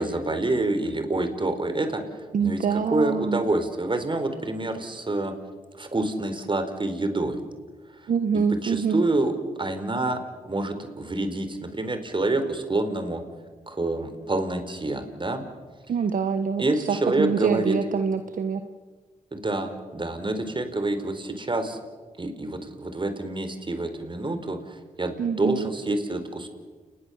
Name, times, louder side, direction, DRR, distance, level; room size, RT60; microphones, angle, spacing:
voice 1, 0.0-2.0 2.4-5.3 5.8-7.4 8.6-9.3 9.6-10.2 10.4-13.2 13.7-15.4 16.6-17.8 19.3-21.8 22.2-26.5, right 2 dB, 30° right, 8 dB, 4.4 m, -27 dB
voice 2, 2.3-3.4 8.1-9.0 15.9-18.6 25.2-25.7, right 6 dB, 60° right, 8 dB, 1.3 m, -25 dB
29.5 x 20.5 x 7.3 m, 1.4 s
supercardioid pair, 55°, 15 cm